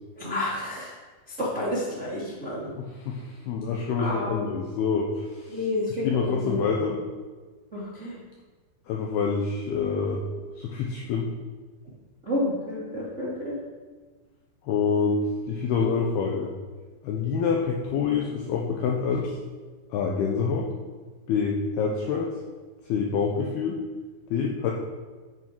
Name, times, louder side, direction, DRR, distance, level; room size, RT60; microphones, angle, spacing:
voice 1, 0.1-0.9 1.4-2.7 4.0-4.4 5.5-6.6 7.7-8.2 12.2-13.5, left 1 dB, 30° right, -7 dB, 1.3 m, -30 dB
voice 2, 2.8-5.6 5.9-7.0 8.9-10.2 10.6-11.3 14.6-16.5 17.0-19.3 19.9-20.7 21.3-22.3 22.9-23.8 24.3-24.7, left 5 dB, 80° left, 0 dB, 2.3 m, -26 dB
11.5 x 8.8 x 4.6 m, 1.4 s
omnidirectional pair, 5.6 m